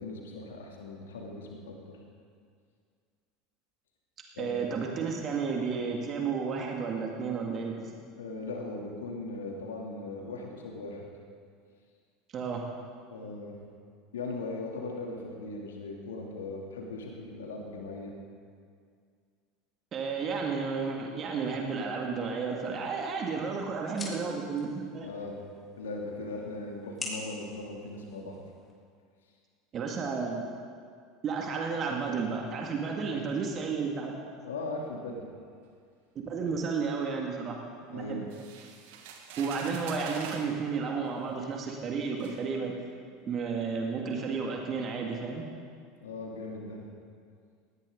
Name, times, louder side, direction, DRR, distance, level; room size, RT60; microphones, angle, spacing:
voice 1, 0.0-2.0 4.3-4.6 8.2-11.0 13.1-13.6 14.1-18.1 25.0-25.4 25.8-28.4 34.4-35.2 37.9-38.3 46.0-46.8, left 2 dB, 75° left, -1 dB, 3.1 m, -39 dB
voice 2, 4.4-7.9 12.3-12.7 19.9-25.1 29.7-30.6 31.2-34.1 36.1-38.3 39.4-42.7 43.3-45.5, right 5 dB, 35° right, 1 dB, 2.3 m, -32 dB
sound 1, 22.7-28.7, left 2 dB, 20° left, 4.6 m, -46 dB
sound 2, 38.3-40.5 41.5-41.6 42.2-42.4, right 6 dB, 60° right, 1.9 m, -44 dB
19.0 x 18.0 x 4.0 m, 2.1 s
figure-of-eight pair, 75°, 0 cm